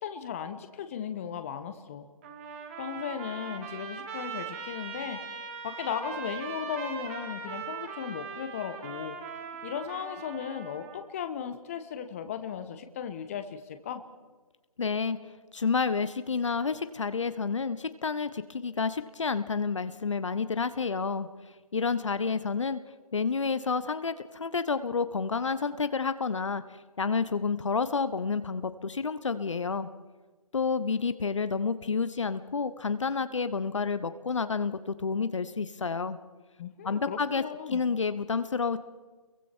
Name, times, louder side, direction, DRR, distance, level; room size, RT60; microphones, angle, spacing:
voice 1, 0.0-2.1 2.8-5.2 5.6-9.2 9.6-14.0 36.6-37.8, left 8 dB, 25° left, 9 dB, 1.3 m, -36 dB
Trumpet, 2.2-11.0, right 6 dB, 20° right, 2.2 m, -40 dB
voice 2, 14.8-15.2 15.5-21.3 21.7-22.8 23.1-26.6 27.0-29.9 30.5-36.2 36.8-37.4 37.7-38.8, left 5 dB, 55° left, 12 dB, 1.1 m, -29 dB
29.5 x 22.5 x 4.6 m, 1.3 s
figure-of-eight pair, 150°, 19 cm